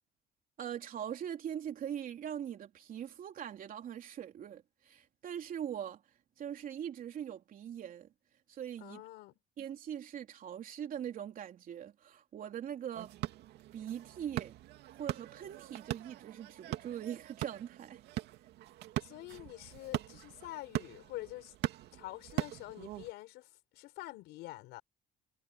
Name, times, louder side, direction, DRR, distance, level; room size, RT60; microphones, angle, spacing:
voice 1, 0.6-6.0 6.4-8.1 8.5-9.0 9.6-13.2 13.7-14.6 14.9-18.0, right 9 dB, 55° right, 3.5 m, -42 dB
voice 2, 8.8-9.3 19.0-21.5 21.9-24.8, left 18 dB, 90° left, 5.4 m, -46 dB
sound 1, 13.0-23.1, right 15 dB, 80° right, 2.5 m, -41 dB
cardioid pair, 110°, 17 cm